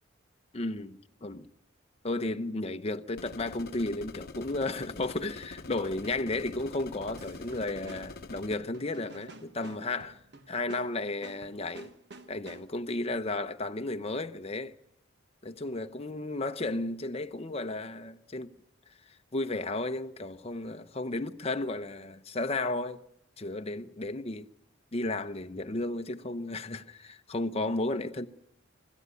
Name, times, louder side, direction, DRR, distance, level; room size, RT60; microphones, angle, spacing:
voice 1, 0.5-1.5 2.0-10.2 10.5-11.9 12.3-14.7 15.4-18.5 19.3-23.0 23.4-24.5 24.9-28.3, left 2 dB, 30° left, 0.8 m, -33 dB
sound 1, 3.2-8.6, left 3 dB, 50° left, 0.9 m, -45 dB
sound 2, 7.2-12.9, right 2 dB, 55° right, 1.3 m, -51 dB
25.0 x 13.5 x 9.6 m
head